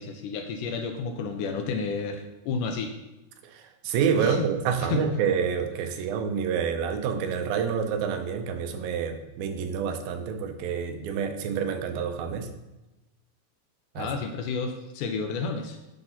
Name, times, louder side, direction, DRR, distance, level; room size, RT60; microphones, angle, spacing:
voice 1, 0.0-2.9 4.2-4.5 4.8-5.1 14.0-15.8, left 4 dB, 80° left, 5 dB, 2.0 m, -31 dB
voice 2, 3.4-12.5 14.0-14.1, right 7 dB, 85° right, 6 dB, 2.6 m, -28 dB
10.0 x 4.0 x 5.7 m, 1.0 s
omnidirectional pair, 4.0 m